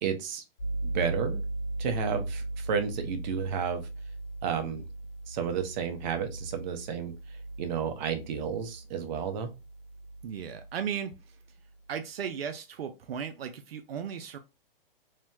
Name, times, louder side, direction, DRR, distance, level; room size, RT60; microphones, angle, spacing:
voice 1, 0.0-0.4 0.8-1.4 1.8-3.8 4.4-4.8 5.3-7.1 7.6-9.5, right 7 dB, 50° right, 0.8 m, -31 dB
sound 1, 0.6-11.2, right 2 dB, 80° left, 0.9 m, -38 dB
voice 2, 10.2-11.1 11.9-14.4, right 7 dB, 90° right, 0.5 m, -36 dB
3.1 x 2.0 x 2.7 m
hypercardioid pair, 130°, 29 cm